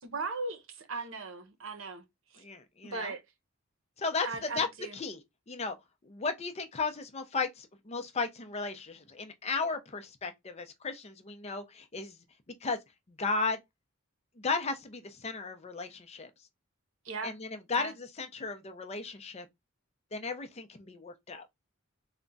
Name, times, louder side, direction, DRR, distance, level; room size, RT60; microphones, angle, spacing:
voice 1, 0.0-2.0 2.3-2.4 2.8-3.2 4.2-5.0 17.0-17.3 17.7-17.9, right 3 dB, 70° right, 0.8 m, -38 dB
voice 2, 2.4-3.1 4.0-4.7 4.9-5.2 5.5-5.8 6.0-12.2 12.6-12.8 13.2-13.6 14.4-16.3 17.2-19.5 20.1-21.5, left 4 dB, 30° left, 0.6 m, -35 dB
3.4 x 2.2 x 3.9 m
head